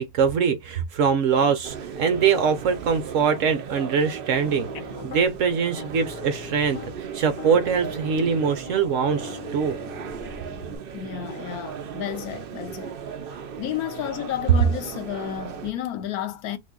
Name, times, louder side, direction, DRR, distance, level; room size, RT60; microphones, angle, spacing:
voice 1, 0.0-4.7 5.0-9.8, right 6 dB, 65° right, 0.9 m, -23 dB
sound 1, 1.6-15.7, right 7 dB, 85° right, 0.5 m, -37 dB
Piano, 4.3-5.3 5.8-7.0 7.4-10.8, left 5 dB, 40° left, 0.6 m, -40 dB
voice 2, 4.7-5.1 10.9-13.0 13.6-16.6, left 11 dB, 75° left, 1.1 m, -32 dB
2.7 x 2.5 x 3.7 m
omnidirectional pair, 1.7 m